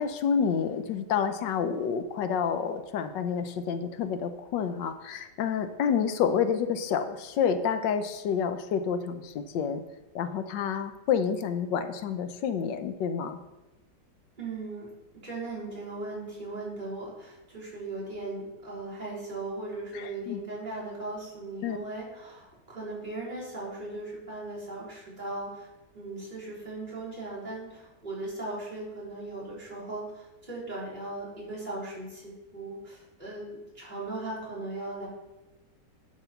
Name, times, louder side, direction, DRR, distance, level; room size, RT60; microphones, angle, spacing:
voice 1, 0.0-9.8 10.1-13.4 19.9-20.4 21.6-21.8, left 7 dB, 85° left, 10 dB, 1.4 m, -29 dB
voice 2, 14.4-14.9 15.2-25.7 25.9-35.1, right 2 dB, 25° right, -8 dB, 4.2 m, -38 dB
11.0 x 5.0 x 5.8 m, 1.0 s
omnidirectional pair, 1.9 m